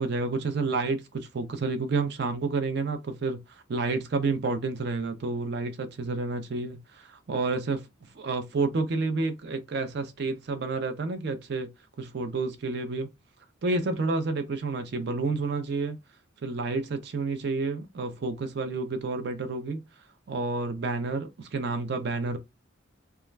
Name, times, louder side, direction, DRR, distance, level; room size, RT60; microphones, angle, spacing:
voice 1, 0.0-3.4 3.7-7.8 8.2-11.7 12.0-13.1 13.6-16.0 16.4-19.8 20.3-22.4, right 3 dB, 55° right, 0.4 m, -29 dB
2.3 x 2.1 x 3.1 m
head